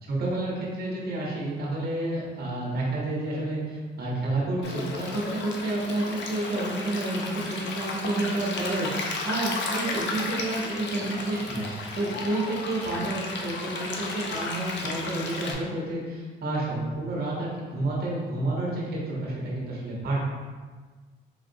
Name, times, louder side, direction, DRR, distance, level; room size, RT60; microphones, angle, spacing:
voice 1, 0.1-8.9 9.2-11.7 11.9-20.3, right 2 dB, 55° right, -4 dB, 1.0 m, -30 dB
Stream, 4.6-15.5, left 3 dB, 65° left, 0.5 m, -34 dB
3.5 x 2.4 x 2.6 m, 1.4 s
cardioid pair, 90°, 20 cm